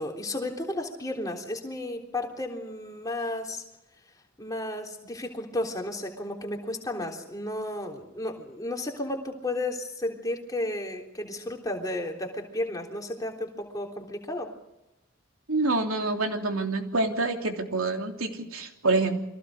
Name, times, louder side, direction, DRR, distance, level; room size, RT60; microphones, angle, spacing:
voice 1, 0.0-3.6 4.4-14.5, left 1 dB, 15° left, 1 dB, 3.6 m, -33 dB
voice 2, 15.5-19.2, right 3 dB, 80° right, 3 dB, 3.1 m, -27 dB
29.5 x 23.5 x 5.0 m, 0.96 s
head